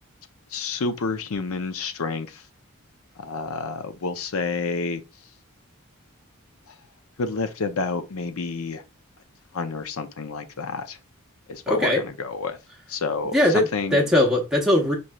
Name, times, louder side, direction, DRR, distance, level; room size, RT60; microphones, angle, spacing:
voice 1, 0.5-2.4 3.2-5.0 7.2-8.8 9.5-11.0 11.5-12.6 12.9-14.1, left 4 dB, 70° left, 0.6 m, -29 dB
voice 2, 11.7-12.0 13.3-14.9, left 1 dB, 5° right, 0.7 m, -20 dB
5.3 x 3.1 x 2.2 m
head